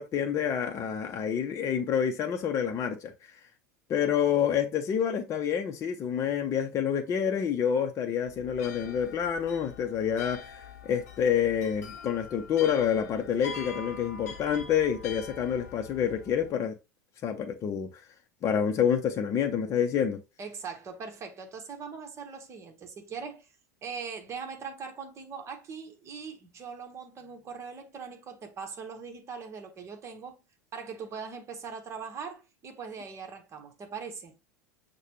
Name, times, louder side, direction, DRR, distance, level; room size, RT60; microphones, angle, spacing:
voice 1, 0.0-3.3 3.9-10.5 10.8-16.7 17.2-17.9 18.4-20.2, left 8 dB, 35° left, 0.6 m, -28 dB
sound 1, 8.3-16.5, left 6 dB, 75° left, 0.7 m, -44 dB
voice 2, 20.4-23.5 23.8-30.4 30.7-34.3, right 5 dB, 30° right, 1.1 m, -41 dB
6.4 x 2.2 x 3.0 m
figure-of-eight pair, 80°, 9 cm